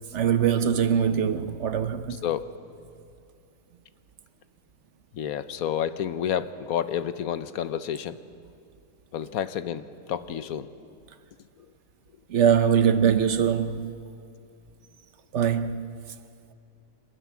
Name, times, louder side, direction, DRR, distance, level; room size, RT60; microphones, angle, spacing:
voice 1, 0.1-2.2 12.3-13.9 15.3-15.9, right 8 dB, 60° right, 0.9 m, -22 dB
voice 2, 5.1-8.2 9.1-10.7, left 9 dB, 80° left, 1.2 m, -30 dB
24.5 x 13.5 x 9.6 m
omnidirectional pair, 1.5 m